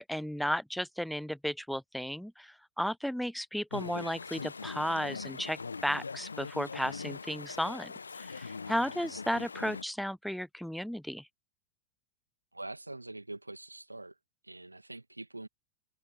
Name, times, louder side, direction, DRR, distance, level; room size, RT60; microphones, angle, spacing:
voice 1, 0.0-11.2, equal, ahead, 0.4 m, -34 dB
Chatter / Stream, 3.7-9.8, left 4 dB, 75° left, 1.2 m, -41 dB
voice 2, 12.5-14.2 14.4-15.5, right 2 dB, 85° right, 2.2 m, -44 dB
figure-of-eight pair, 90°, 0 cm